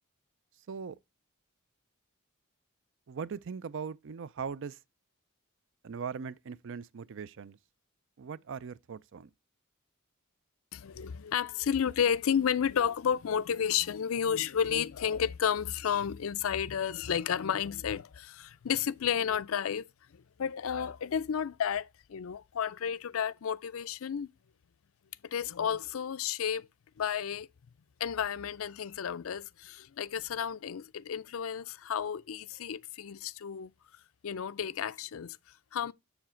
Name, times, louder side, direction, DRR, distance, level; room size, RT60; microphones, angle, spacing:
voice 1, 3.1-4.8 5.8-7.6 8.2-9.3, right 6 dB, 60° right, 0.5 m, -40 dB
voice 2, 10.7-19.9 20.1-24.3 25.2-26.7 27.0-27.5 28.0-33.7 34.2-35.9, left 8 dB, 65° left, 0.4 m, -32 dB
7.1 x 6.9 x 4.3 m
head